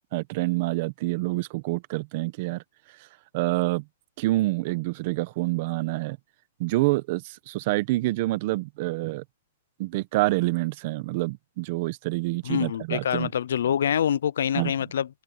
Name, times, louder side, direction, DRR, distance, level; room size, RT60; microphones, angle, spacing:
voice 1, 0.1-2.6 3.3-3.8 4.2-6.2 6.6-9.2 9.8-13.3 14.5-14.7, right 20 dB, 45° right, 1.4 m, -27 dB
voice 2, 12.4-15.1, left 9 dB, 75° left, 0.6 m, -25 dB
hypercardioid pair, 145°, 0 cm